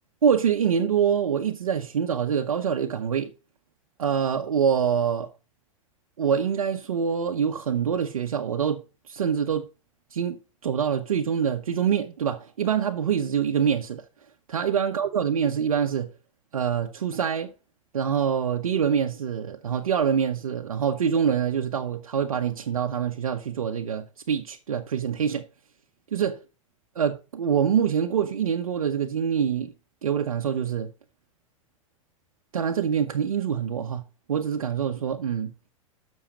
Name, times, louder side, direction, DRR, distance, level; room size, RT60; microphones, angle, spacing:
voice 1, 0.2-3.3 4.0-5.3 6.2-9.7 10.1-10.4 10.6-14.0 14.5-16.1 16.5-17.5 17.9-25.5 26.1-26.3 27.0-29.7 30.0-30.9 32.5-34.0 34.3-35.5, right 7 dB, 90° right, 0.8 m, -25 dB
7.2 x 6.2 x 4.9 m
hypercardioid pair, 105°, 18 cm